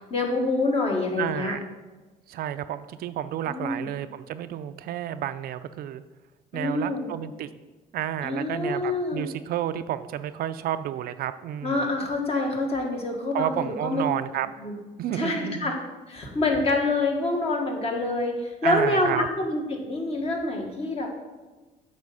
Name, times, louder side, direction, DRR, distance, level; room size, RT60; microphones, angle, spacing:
voice 1, 0.1-1.6 3.5-3.8 6.5-7.1 8.2-9.3 11.6-14.0 14.6-14.7 15.1-15.7 16.1-21.1, left 2 dB, 35° left, 1 dB, 1.7 m, -26 dB
voice 2, 1.2-1.6 2.3-6.0 6.5-7.5 7.9-11.9 13.3-14.5 15.0-15.7 18.6-19.3, right 11 dB, 65° right, 12 dB, 0.4 m, -31 dB
8.3 x 4.3 x 5.5 m, 1.2 s
cardioid pair, 110°, 17 cm